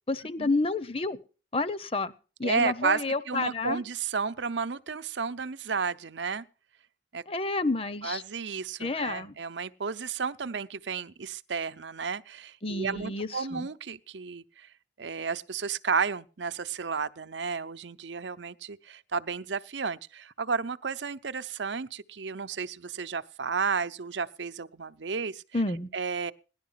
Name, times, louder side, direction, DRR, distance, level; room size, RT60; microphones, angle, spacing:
voice 1, 0.1-1.2 1.5-2.1 2.4-3.8 7.3-8.2 8.8-9.3 12.6-13.7 25.5-25.9, left 3 dB, 30° left, 0.8 m, -30 dB
voice 2, 2.4-6.5 7.1-7.2 8.0-14.7 15.0-25.4 25.9-26.3, right 5 dB, 85° right, 0.7 m, -32 dB
18.0 x 11.5 x 5.7 m
head